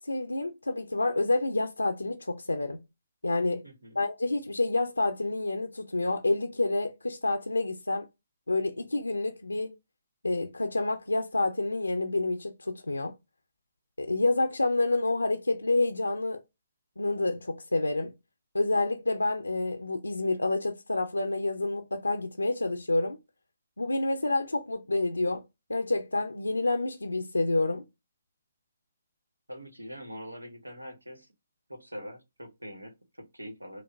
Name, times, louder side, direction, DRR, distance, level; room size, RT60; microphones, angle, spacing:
voice 1, 0.0-2.8 3.2-3.6 4.0-8.1 8.5-9.8 10.2-13.1 14.0-16.4 17.0-18.1 18.5-23.2 23.8-25.4 25.7-27.9, left 2 dB, 85° left, 0.4 m, -28 dB
voice 2, 3.6-4.0 29.5-31.3 31.7-33.8, equal, 90° right, 1.0 m, -43 dB
5.1 x 2.1 x 2.4 m
figure-of-eight pair, 135°, 0 cm